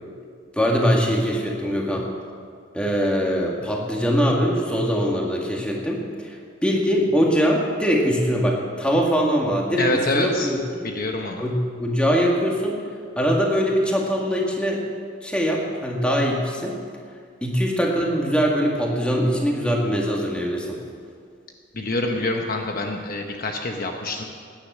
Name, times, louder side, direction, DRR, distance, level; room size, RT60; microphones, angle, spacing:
voice 1, 0.6-2.1 2.7-6.4 6.6-10.9 11.4-12.8 13.2-14.8 15.2-16.8 17.4-20.8, equal, 5° left, -1 dB, 2.0 m, -22 dB
voice 2, 9.7-10.5 10.8-11.4 21.7-24.2, left 2 dB, 50° left, 3 dB, 1.0 m, -26 dB
16.5 x 10.0 x 6.2 m, 2.2 s
head